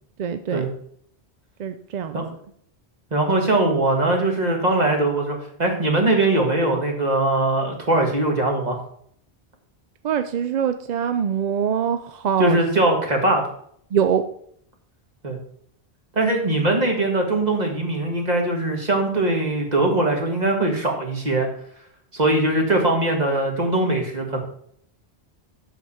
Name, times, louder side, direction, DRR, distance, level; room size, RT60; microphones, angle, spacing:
voice 1, 0.2-0.6 1.6-2.2 10.0-12.6 13.9-14.2, right 8 dB, 55° right, 9 dB, 0.5 m, -23 dB
voice 2, 3.1-8.8 12.4-13.4 15.2-15.4 16.2-21.5 22.1-24.4, right 2 dB, 40° right, 1 dB, 1.8 m, -21 dB
8.0 x 6.6 x 4.3 m, 0.65 s
omnidirectional pair, 1.1 m